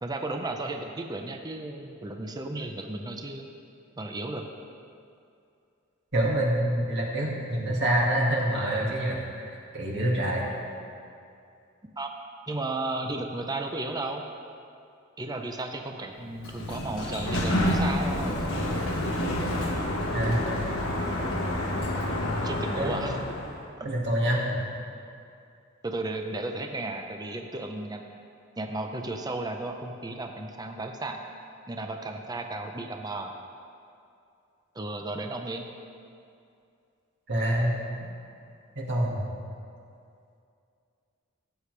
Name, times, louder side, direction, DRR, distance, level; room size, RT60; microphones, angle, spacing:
voice 1, 0.0-3.5 4.0-4.5 12.0-12.1 12.5-14.2 15.2-18.4 22.3-23.2 23.8-23.9 25.8-28.0 28.6-31.2 31.7-33.3 34.7-35.6, right 2 dB, 20° right, 4 dB, 0.6 m, -34 dB
voice 2, 6.1-10.5 20.1-20.5 22.7-23.1 23.8-24.6 37.3-37.7 38.8-39.2, right 1 dB, 60° right, -3 dB, 2.0 m, -26 dB
Sliding door, 16.2-23.6, left 1 dB, 80° left, 1.3 m, -28 dB
16.0 x 8.4 x 3.3 m, 2.5 s
head